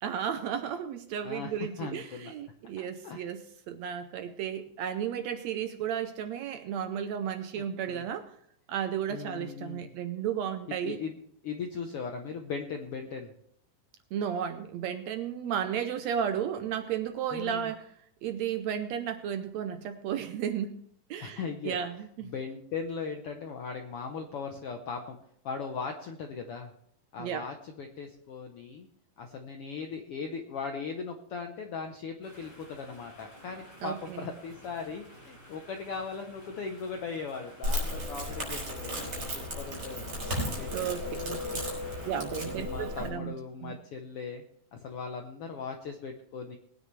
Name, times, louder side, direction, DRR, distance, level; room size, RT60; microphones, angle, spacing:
voice 1, 0.0-3.4 3.7-8.3 8.7-11.0 14.1-17.9 18.2-20.8 21.1-22.3 27.2-27.4 33.8-34.3 40.7-41.6 42.1-43.3 43.6-43.7, right 9 dB, 75° right, 8 dB, 1.7 m, -33 dB
voice 2, 1.2-2.3 2.8-3.2 7.5-8.1 9.1-9.9 10.7-11.2 11.4-13.3 17.3-17.7 21.2-21.8 22.2-25.2 25.4-26.7 27.1-28.9 29.2-40.3 40.6-41.6 42.4-44.4 44.7-46.6, left 5 dB, 70° left, 4 dB, 1.3 m, -39 dB
sound 1, 32.2-42.2, equal, 15° left, 5.9 m, -53 dB
Crackle, 37.6-43.1, left 1 dB, 45° right, 5.4 m, -34 dB
20.0 x 9.7 x 3.2 m, 0.68 s
omnidirectional pair, 3.6 m